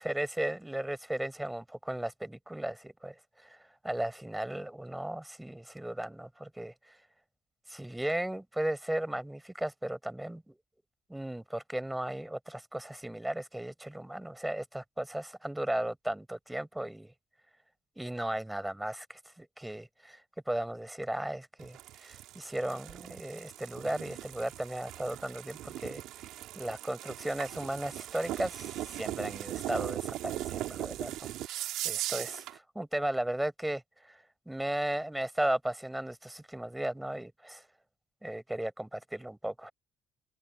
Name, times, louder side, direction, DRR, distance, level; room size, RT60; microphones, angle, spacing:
voice 1, 0.0-6.7 7.7-10.6 11.1-17.1 18.0-20.2 20.5-26.0 26.6-34.2 34.5-37.6 38.2-39.7, right 1 dB, 5° right, 5.4 m, -36 dB
sound 1, 21.6-32.6, right 14 dB, 80° right, 3.3 m, -39 dB
cardioid pair, 95°, 0 cm